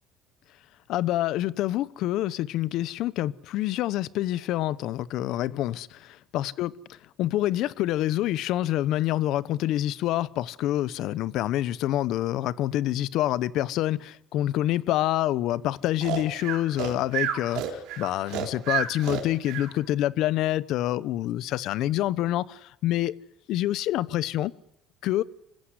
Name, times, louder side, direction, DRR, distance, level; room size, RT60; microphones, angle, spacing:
voice 1, 0.9-6.7 7.2-23.1 23.5-24.5 25.0-25.2, left 14 dB, 60° left, 0.9 m, -27 dB
Breathing, 16.0-19.7, right 10 dB, 70° right, 4.2 m, -30 dB
25.5 x 16.0 x 9.7 m
cardioid pair, 145°, 0 cm